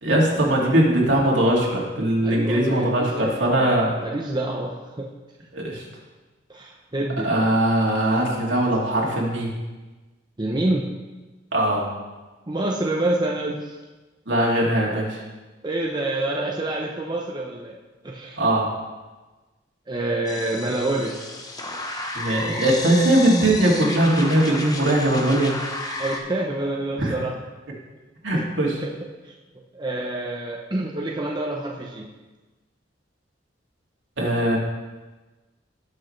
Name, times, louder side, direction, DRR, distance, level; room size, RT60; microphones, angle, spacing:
voice 1, 0.0-3.9 5.5-5.8 7.2-9.5 11.5-11.9 14.3-15.2 18.4-18.7 22.1-25.5 27.0-27.1 28.2-28.8 34.2-34.6, right 1 dB, 70° right, -3 dB, 2.6 m, -20 dB
voice 2, 2.2-3.7 3.9-5.1 6.5-7.3 10.4-10.9 12.5-13.8 15.6-17.8 18.0-18.4 19.9-21.1 26.0-27.3 28.8-28.9 29.2-29.3 29.7-32.1, right 2 dB, 25° right, -1 dB, 0.8 m, -27 dB
sound 1, 20.3-26.2, left 2 dB, 20° left, 1.1 m, -32 dB
18.5 x 6.3 x 3.3 m, 1.2 s
head